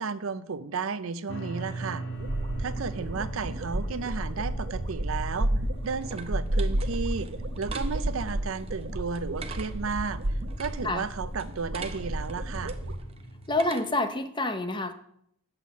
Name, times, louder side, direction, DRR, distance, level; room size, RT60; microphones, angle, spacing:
voice 1, 0.0-2.0 2.6-5.5 5.8-7.3 7.6-10.2 10.6-12.8, right 5 dB, 85° right, 14 dB, 0.5 m, -33 dB
sound 1, 1.3-13.6, right 2 dB, 60° left, 1.0 m, -41 dB
sound 2, 2.1-13.0, right 1 dB, 70° right, 0.9 m, -32 dB
sound 3, 5.4-14.2, right 4 dB, 30° right, 0.7 m, -45 dB
voice 2, 13.5-14.9, left 2 dB, 20° left, 8 dB, 0.7 m, -27 dB
7.9 x 5.8 x 7.1 m, 0.72 s
head